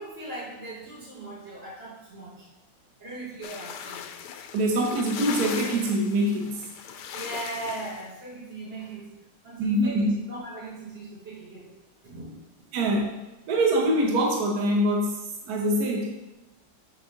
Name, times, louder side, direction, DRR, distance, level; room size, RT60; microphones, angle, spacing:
voice 1, 0.0-2.5 3.0-4.0 7.1-9.1 9.4-11.7 12.0-12.3, right 2 dB, 85° right, -8 dB, 3.9 m, -39 dB
sound 1, 3.4-8.1, left 8 dB, 70° left, 1.2 m, -38 dB
voice 2, 4.5-6.6 9.6-10.1 12.7-13.1 13.5-16.2, right 1 dB, 60° right, 0 dB, 1.4 m, -24 dB
7.6 x 3.7 x 6.4 m, 1.0 s
omnidirectional pair, 2.0 m